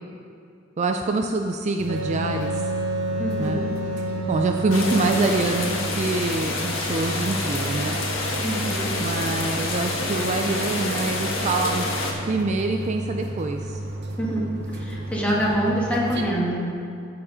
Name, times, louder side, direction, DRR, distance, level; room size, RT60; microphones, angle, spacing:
voice 1, 0.8-2.6 3.4-3.6 4.3-8.0 9.0-11.9 12.3-13.8, right 3 dB, 35° right, 4 dB, 0.4 m, -25 dB
sound 1, 1.8-16.2, right 1 dB, 60° right, 0.8 m, -33 dB
Wind instrument woodwind instrument, 1.9-6.0, right 2 dB, 75° right, 1.1 m, -29 dB
voice 2, 3.2-3.6 8.4-8.9 14.2-14.4 14.7-16.7, equal, 5° left, -6 dB, 1.8 m, -25 dB
sound 2, 4.7-12.1, left 2 dB, 85° left, 1.5 m, -28 dB
13.5 x 4.8 x 5.0 m, 2.5 s
head